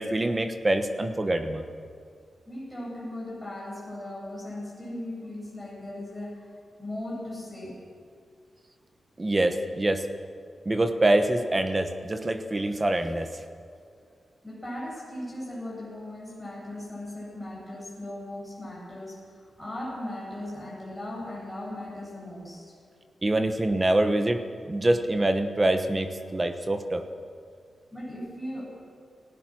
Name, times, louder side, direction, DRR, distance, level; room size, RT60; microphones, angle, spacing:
voice 1, 0.0-1.6 9.2-10.1 10.6-13.4 23.2-24.4 24.7-27.0, right 1 dB, 20° right, 7 dB, 1.1 m, -25 dB
voice 2, 2.5-6.5 6.8-7.8 14.4-22.7 27.9-28.6, left 1 dB, ahead, -6 dB, 7.5 m, -38 dB
29.0 x 17.5 x 6.3 m, 2.3 s
wide cardioid pair, 175°, 0 cm